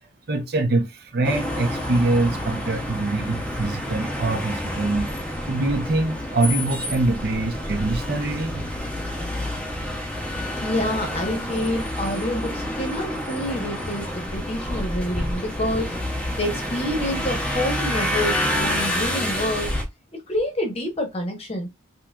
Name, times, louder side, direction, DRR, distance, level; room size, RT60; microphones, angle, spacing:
voice 1, 0.3-5.1 5.5-8.6, right 2 dB, 50° right, 0.6 m, -24 dB
sound 1, 1.2-19.8, left 1 dB, 5° left, 0.6 m, -28 dB
sound 2, 5.8-11.9, equal, 30° right, 1.0 m, -42 dB
voice 2, 10.6-15.9 16.4-19.7 20.3-21.7, left 1 dB, 30° left, 0.8 m, -27 dB
3.6 x 2.9 x 2.2 m
head